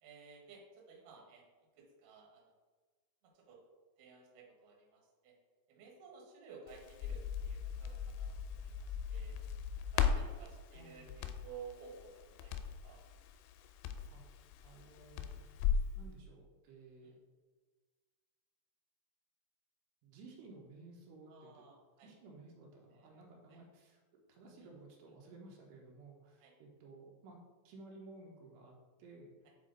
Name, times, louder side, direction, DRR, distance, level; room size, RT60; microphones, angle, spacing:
voice 1, 0.0-1.4 1.8-2.4 3.3-3.6 4.0-5.3 5.7-9.4 9.9-12.5 12.8-13.0 17.0-17.1 21.3-22.1 22.9-23.2 23.5-23.6 26.4-26.5, right 5 dB, 65° right, -1 dB, 2.6 m, -55 dB
Crackle, 6.7-15.9, left 7 dB, 90° left, 2.8 m, -38 dB
voice 2, 10.7-11.1 13.6-15.4 15.9-17.2 20.0-21.7 22.0-27.4 27.6-29.3, right 3 dB, 80° right, -1 dB, 3.1 m, -56 dB
8.5 x 4.3 x 3.8 m, 1.4 s
omnidirectional pair, 4.9 m